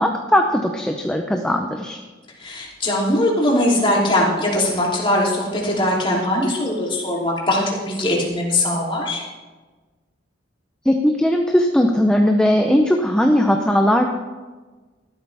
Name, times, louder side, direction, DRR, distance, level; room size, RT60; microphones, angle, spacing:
voice 1, 0.0-2.0 10.8-14.0, equal, 5° left, 3 dB, 0.7 m, -18 dB
voice 2, 2.4-9.2, left 1 dB, 30° left, -4 dB, 3.2 m, -20 dB
14.0 x 12.5 x 3.5 m, 1.3 s
head